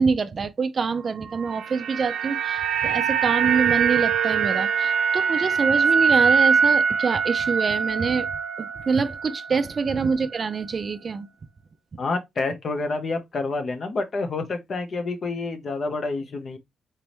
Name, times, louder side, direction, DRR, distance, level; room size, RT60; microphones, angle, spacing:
voice 1, 0.0-8.3 8.6-11.3, right 5 dB, 40° right, 0.5 m, -25 dB
sound 1, 1.3-9.6 9.9-10.1, right 6 dB, 80° right, 0.6 m, -23 dB
voice 2, 12.0-16.6, left 3 dB, 45° left, 0.8 m, -28 dB
4.1 x 3.4 x 3.0 m
cardioid pair, 130°, 0 cm